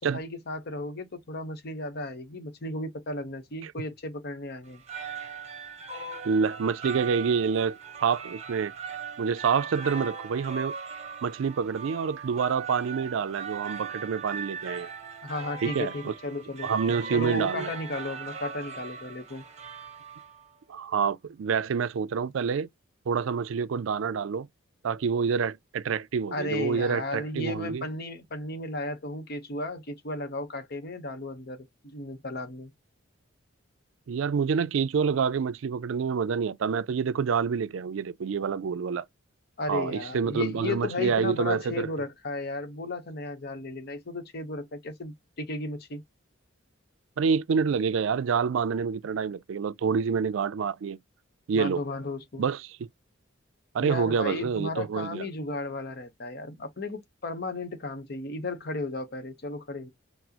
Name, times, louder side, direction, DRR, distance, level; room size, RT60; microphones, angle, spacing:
voice 1, 0.0-4.8 15.2-16.7 17.1-19.5 26.3-32.7 39.6-46.0 51.5-52.5 53.8-59.9, left 2 dB, 55° left, 0.9 m, -34 dB
sound 1, 4.7-20.5, right 5 dB, 35° right, 0.8 m, -39 dB
voice 2, 6.2-8.7 9.2-10.8 11.2-14.9 15.6-16.1 16.6-17.7 20.7-22.7 23.1-24.5 24.8-27.9 34.1-39.1 39.7-41.9 47.2-51.0 51.5-51.8 52.4-52.9 53.7-55.2, right 6 dB, 70° right, 0.4 m, -27 dB
6.0 x 2.0 x 2.8 m
head